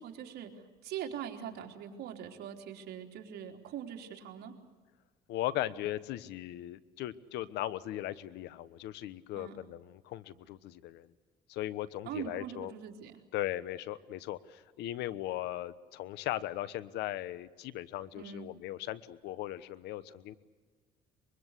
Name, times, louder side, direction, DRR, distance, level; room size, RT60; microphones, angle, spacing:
voice 1, 0.0-4.5 9.4-9.6 12.1-13.2 18.1-18.5, right 9 dB, 75° right, 2 dB, 3.7 m, -42 dB
voice 2, 5.3-11.1 11.5-12.7 13.3-20.4, left 14 dB, 85° left, 16 dB, 1.1 m, -38 dB
24.5 x 24.0 x 8.2 m, 1.4 s
cardioid pair, 110°, 17 cm